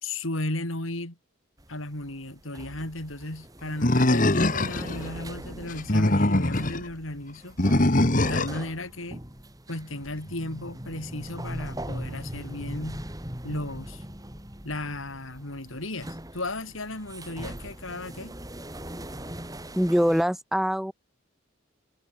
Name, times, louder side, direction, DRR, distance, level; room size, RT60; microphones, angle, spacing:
voice 1, 0.0-1.2 1.7-7.6 8.2-9.2 9.7-13.0 13.4-14.0 14.6-18.3, left 2 dB, 80° left, 4.7 m, -35 dB
sound 1, 1.6-20.2, right 1 dB, 20° right, 4.5 m, -40 dB
Animal, 3.8-5.0 5.7-6.8 7.6-8.6, left 1 dB, 40° left, 1.6 m, -22 dB
voice 2, 19.8-20.9, equal, ahead, 0.5 m, -23 dB
head